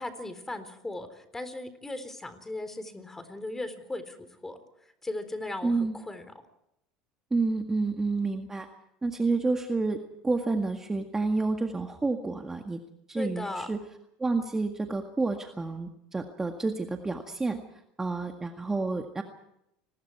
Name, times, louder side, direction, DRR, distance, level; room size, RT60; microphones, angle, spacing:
voice 1, 0.0-6.3 13.2-13.7, left 2 dB, 10° left, 10 dB, 3.9 m, -37 dB
voice 2, 5.6-6.0 7.3-8.7 9.0-10.0 10.2-12.8 13.1-13.8 14.2-17.6 18.0-19.2, right 3 dB, 15° right, 4 dB, 1.9 m, -29 dB
29.5 x 20.5 x 4.7 m, 0.81 s
supercardioid pair, 105°, 3 cm